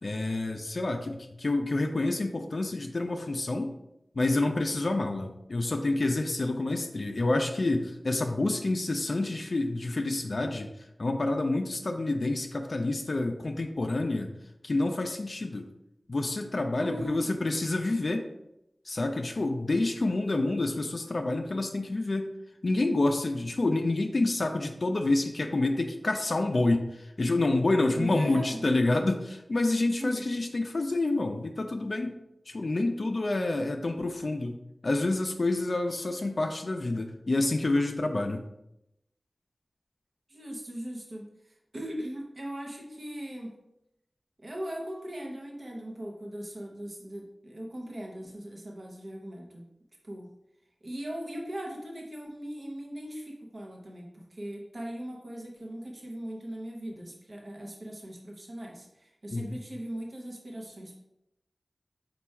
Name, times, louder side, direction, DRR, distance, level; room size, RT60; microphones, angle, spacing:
voice 1, 0.0-3.8 4.2-10.7 11.0-14.3 14.6-15.7 16.1-18.3 18.9-22.3 22.6-32.1 32.5-34.6 34.8-38.4 59.3-59.6, left 2 dB, 55° left, 4 dB, 0.4 m, -28 dB
voice 2, 16.8-17.3 28.0-28.6 30.0-30.2 40.3-43.5 44.4-49.7 50.0-50.3 50.8-61.0, equal, 50° right, -1 dB, 0.6 m, -39 dB
4.5 x 2.3 x 4.2 m, 0.84 s
wide cardioid pair, 80°, 0 cm